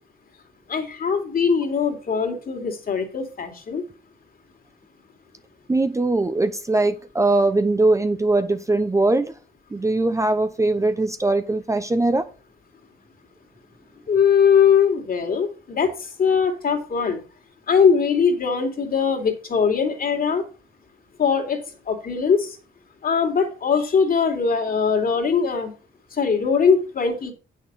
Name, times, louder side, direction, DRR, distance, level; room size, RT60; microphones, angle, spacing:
voice 1, 0.7-3.8 14.1-17.2 17.7-20.4 21.2-21.6 21.9-22.6 23.0-25.7 26.2-27.3, left 6 dB, 45° left, 4 dB, 2.6 m, -21 dB
voice 2, 5.7-9.3 9.7-12.3, right 2 dB, 15° right, 10 dB, 0.8 m, -21 dB
8.4 x 6.6 x 5.5 m, 0.36 s
cardioid pair, 90°, 20 cm